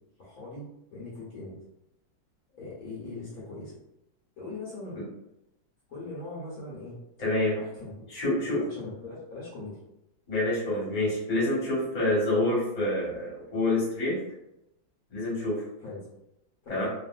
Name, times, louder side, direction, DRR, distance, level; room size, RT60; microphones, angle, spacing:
voice 1, 0.2-1.6 2.5-3.7 4.4-5.0 5.9-7.0 7.5-8.1 8.4-9.8 15.8-16.0 16.6-16.9, left 2 dB, 55° left, -8 dB, 1.2 m, -40 dB
voice 2, 7.2-7.5 8.1-8.6 10.3-14.1 15.1-15.6 16.7-16.9, left 2 dB, 25° left, -7 dB, 1.1 m, -27 dB
3.0 x 2.5 x 2.3 m, 0.85 s
omnidirectional pair, 2.0 m